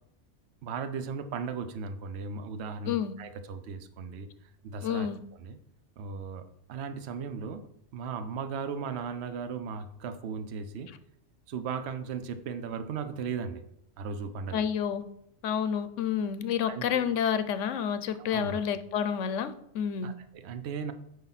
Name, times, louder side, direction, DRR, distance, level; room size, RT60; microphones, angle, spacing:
voice 1, 0.6-4.3 4.6-5.1 5.4-5.6 6.0-10.9 11.5-13.6 14.0-14.7 16.6-17.1 18.2-18.6 20.0-20.9, right 5 dB, 65° right, 1.0 m, -37 dB
voice 2, 4.8-5.2 14.5-15.0 15.4-20.1, left 8 dB, 90° left, 1.0 m, -29 dB
9.4 x 5.4 x 4.1 m
omnidirectional pair, 1.2 m